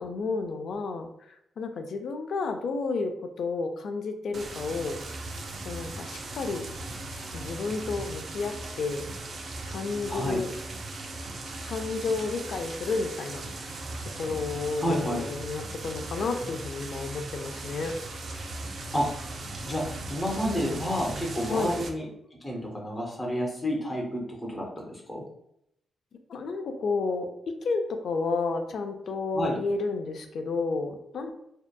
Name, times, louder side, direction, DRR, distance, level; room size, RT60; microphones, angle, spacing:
voice 1, 0.0-3.1 3.4-5.0 5.6-6.7 7.3-9.1 9.7-10.5 11.6-17.9 20.4-20.8 21.5-21.8 26.3-27.3 27.6-31.3, left 4 dB, 65° left, 6 dB, 0.3 m, -31 dB
sound 1, 4.3-21.9, right 2 dB, 50° right, 0.3 m, -38 dB
voice 2, 10.1-10.4 14.8-15.2 18.9-19.1 19.6-22.1 22.4-25.3 29.3-29.6, equal, 10° left, -2 dB, 0.5 m, -30 dB
2.7 x 2.1 x 2.2 m, 0.78 s
wide cardioid pair, 140°, 0 cm